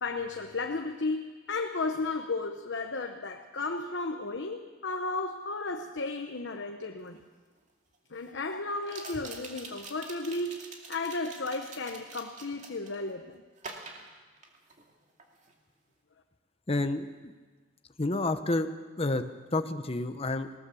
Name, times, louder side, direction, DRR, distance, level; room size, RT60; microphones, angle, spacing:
voice 1, 0.0-7.2 8.1-10.6 10.9-13.4, left 3 dB, 65° left, 4 dB, 1.1 m, -34 dB
sound 1, 7.1-7.2 8.8-13.0 13.6-14.9 15.2-15.5, right 3 dB, 40° right, 2.4 m, -46 dB
voice 2, 16.7-17.3 18.0-18.7 19.0-19.2 19.5-20.5, left 2 dB, 30° left, 9 dB, 0.9 m, -29 dB
19.5 x 18.5 x 7.0 m, 1.3 s
head